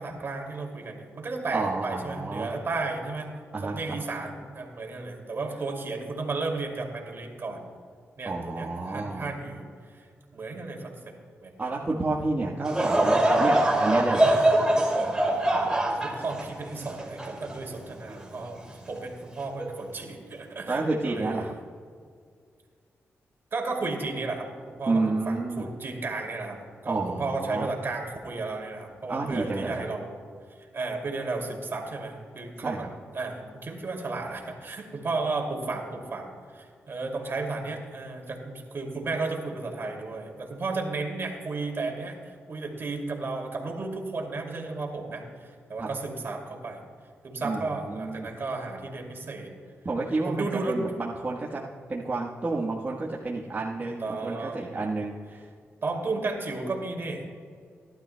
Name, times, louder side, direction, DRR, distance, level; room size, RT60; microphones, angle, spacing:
voice 1, 0.0-3.3 3.6-7.6 8.2-9.7 9.9-10.1 10.3-11.1 11.4-11.7 15.9-21.5 23.5-30.2 30.5-32.9 33.1-46.8 47.2-49.5 50.2-50.8 53.8-54.7 55.8-57.3, right 3 dB, 50° right, 1 dB, 2.4 m, -33 dB
voice 2, 1.5-2.5 3.5-4.0 8.2-9.3 11.6-14.4 20.7-21.5 24.8-25.7 26.9-27.7 29.1-29.7 32.6-32.9 45.8-45.9 47.4-48.3 49.8-51.6 51.9-55.5, right 3 dB, 35° right, -4 dB, 1.2 m, -30 dB
Laughter / Crowd, 12.6-18.1 18.7-18.8 19.6-19.8, right 1 dB, 15° right, 2.4 m, -23 dB
18.5 x 11.5 x 2.2 m, 2.1 s
cardioid pair, 75°, 5 cm